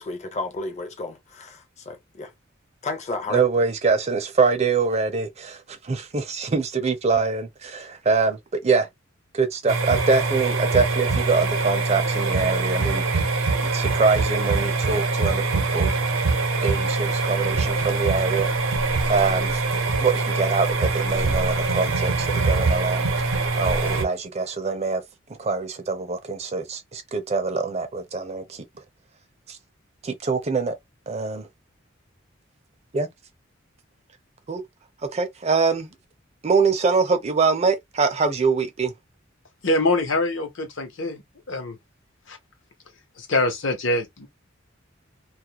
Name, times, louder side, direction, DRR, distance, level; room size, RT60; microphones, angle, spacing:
voice 1, 0.0-2.3 2.8-3.5, left 2 dB, 35° left, 0.5 m, -32 dB
voice 2, 3.3-8.9 9.3-13.3 13.6-16.0 16.6-18.5 19.1-19.6 20.0-23.1 23.6-25.0 25.4-28.6 29.5-29.6 30.0-30.7 31.1-31.5 32.9-33.1 34.5-34.6 35.1-35.9 36.4-38.9, right 4 dB, 30° right, 0.5 m, -24 dB
sound 1, 9.7-24.0, right 3 dB, 80° right, 0.6 m, -23 dB
voice 3, 39.6-41.2 41.5-41.8 42.3-42.4 43.2-44.3, left 2 dB, 70° left, 0.8 m, -24 dB
2.3 x 2.1 x 2.8 m
head